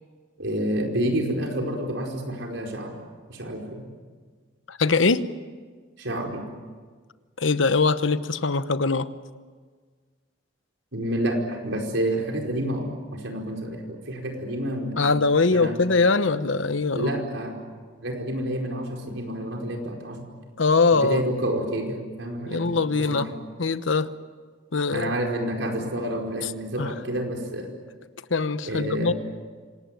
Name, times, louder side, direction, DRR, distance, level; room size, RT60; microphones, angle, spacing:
voice 1, 0.4-2.9 3.3-3.8 6.0-6.4 10.9-15.1 15.5-15.8 16.9-17.6 18.0-20.2 20.9-22.8 23.1-23.3 24.9-27.7 28.7-29.1, right 1 dB, 80° right, 1 dB, 4.9 m, -29 dB
voice 2, 4.7-5.3 7.4-9.1 15.0-17.1 20.6-21.2 22.5-23.3 23.6-24.1 24.7-25.1 26.8-26.9 28.3-29.1, left 4 dB, 85° left, 13 dB, 1.0 m, -22 dB
26.5 x 19.0 x 9.3 m, 1.5 s
head